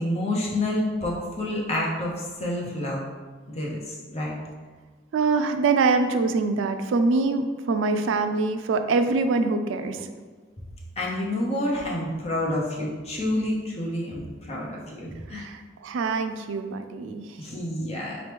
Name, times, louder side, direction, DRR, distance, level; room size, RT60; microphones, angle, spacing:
voice 1, 0.0-2.1 2.4-3.0 3.5-4.3 11.0-15.4 17.4-18.2, left 1 dB, 35° left, -3 dB, 0.7 m, -28 dB
voice 2, 5.1-10.1 15.4-17.2, right 3 dB, 90° right, 8 dB, 0.3 m, -24 dB
4.3 x 3.0 x 3.4 m, 1.4 s
head